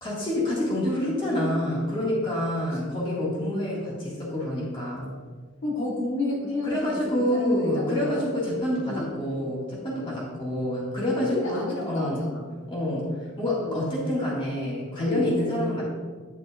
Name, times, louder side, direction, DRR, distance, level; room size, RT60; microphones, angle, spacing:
voice 1, 0.0-5.1 6.6-12.2 12.7-15.8, left 1 dB, 25° left, -6 dB, 1.9 m, -27 dB
voice 2, 5.6-6.8 7.2-8.2 8.8-9.1 11.3-12.4 13.6-13.8 15.0-15.3, left 2 dB, 70° left, -3 dB, 1.4 m, -31 dB
10.0 x 5.6 x 2.4 m, 1.6 s
head